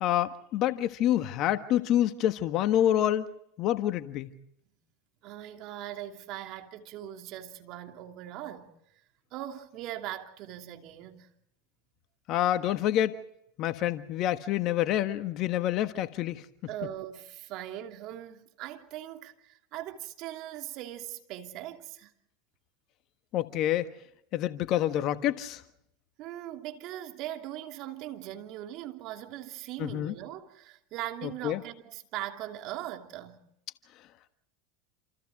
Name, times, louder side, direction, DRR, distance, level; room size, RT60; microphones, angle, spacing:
voice 1, 0.0-3.2 3.6-4.3 12.3-13.2 13.6-16.4 23.3-23.9 24.3-25.6 29.8-30.1 31.4-31.6, left 12 dB, 50° left, 1.4 m, -27 dB
voice 2, 5.2-8.7 9.3-11.3 16.7-22.1 26.2-33.4, right 13 dB, 55° right, 2.9 m, -40 dB
28.5 x 28.0 x 3.7 m
hypercardioid pair, 100°, 0 cm